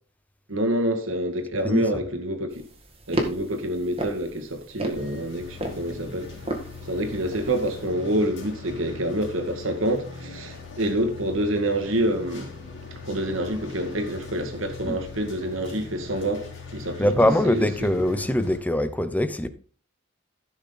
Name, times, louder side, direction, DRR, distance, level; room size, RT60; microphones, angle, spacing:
voice 1, 0.5-2.6 3.1-6.3 6.8-12.5 13.0-16.5 16.7-17.9, right 1 dB, 80° right, 2.0 m, -27 dB
sound 1, 2.5-7.9, right 1 dB, 30° right, 1.9 m, -34 dB
sound 2, 4.9-18.6, left 3 dB, 60° left, 3.6 m, -40 dB
voice 2, 17.0-19.5, left 1 dB, 10° left, 0.7 m, -22 dB
15.0 x 6.2 x 3.9 m
head